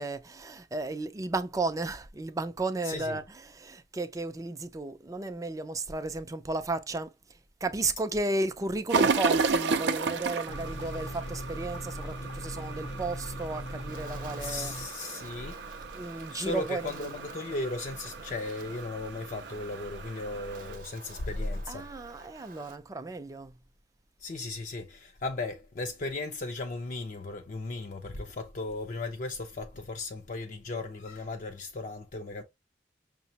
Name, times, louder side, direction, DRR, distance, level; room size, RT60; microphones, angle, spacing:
voice 1, 0.0-15.0 15.9-17.3 21.7-23.5, right 2 dB, 20° right, 0.4 m, -34 dB
voice 2, 2.9-3.2 14.4-15.6 16.3-21.9 24.2-32.4, left 2 dB, 45° left, 0.5 m, -36 dB
sound 1, 8.9-20.8, right 4 dB, 80° right, 0.4 m, -33 dB
sound 2, 10.5-14.9, equal, 90° left, 0.6 m, -39 dB
Wind, 13.9-22.8, right 4 dB, 50° right, 0.8 m, -50 dB
5.6 x 2.1 x 2.7 m
head